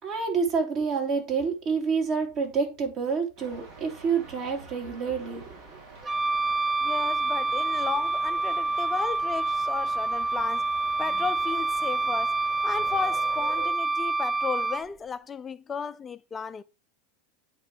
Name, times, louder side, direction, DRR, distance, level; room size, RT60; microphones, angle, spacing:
voice 1, 0.0-5.8, right 5 dB, 45° right, 2.8 m, -28 dB
sound 1, 3.4-13.7, right 3 dB, 60° right, 3.6 m, -46 dB
Wind instrument woodwind instrument, 6.0-14.8, right 3 dB, 20° right, 0.4 m, -27 dB
voice 2, 6.8-10.7 11.0-12.4 12.6-16.6, left 6 dB, 25° left, 0.6 m, -34 dB
9.1 x 4.0 x 4.5 m
hypercardioid pair, 100°, 0 cm